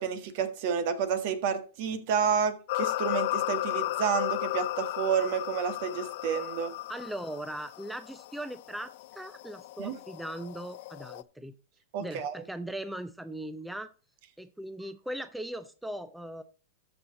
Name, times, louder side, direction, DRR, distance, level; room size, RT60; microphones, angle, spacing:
voice 1, 0.0-6.7 9.8-9.9 11.9-12.3, right 7 dB, 55° right, 1.6 m, -30 dB
sound 1, 2.7-11.2, left 17 dB, 60° left, 0.4 m, -34 dB
voice 2, 6.9-11.5 12.0-13.9 14.4-16.4, right 1 dB, 5° right, 0.6 m, -39 dB
13.0 x 6.3 x 4.0 m
hypercardioid pair, 120°, 0 cm